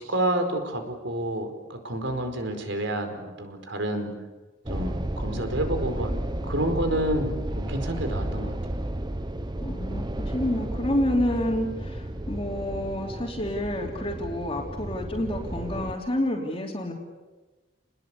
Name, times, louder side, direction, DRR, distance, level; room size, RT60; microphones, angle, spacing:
voice 1, 0.0-4.1 4.7-6.1 6.5-8.5, right 1 dB, 70° right, 6 dB, 4.8 m, -29 dB
sound 1, 4.7-16.0, right 1 dB, 20° right, 1.3 m, -32 dB
voice 2, 9.6-16.9, left 1 dB, 30° left, -1 dB, 3.2 m, -29 dB
30.0 x 21.0 x 8.5 m, 1.2 s
head